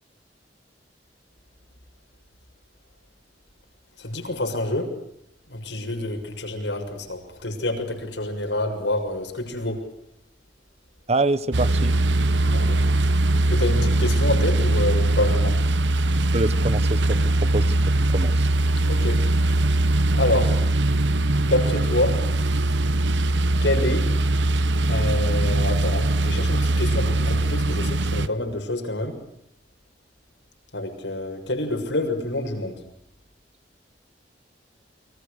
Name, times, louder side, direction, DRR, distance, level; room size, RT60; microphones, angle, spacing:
voice 1, 4.0-4.9 5.5-9.9 12.5-12.8 13.5-15.6 18.9-19.2 20.1-20.7 21.4-22.2 23.6-24.1 24.9-29.2 30.7-32.8, left 1 dB, 90° left, 4 dB, 6.8 m, -27 dB
voice 2, 11.1-11.9 16.3-18.6, right 2 dB, 35° right, 15 dB, 1.1 m, -26 dB
sound 1, 11.5-28.3, right 2 dB, 90° right, 1.0 m, -21 dB
30.0 x 24.5 x 6.7 m, 0.75 s
head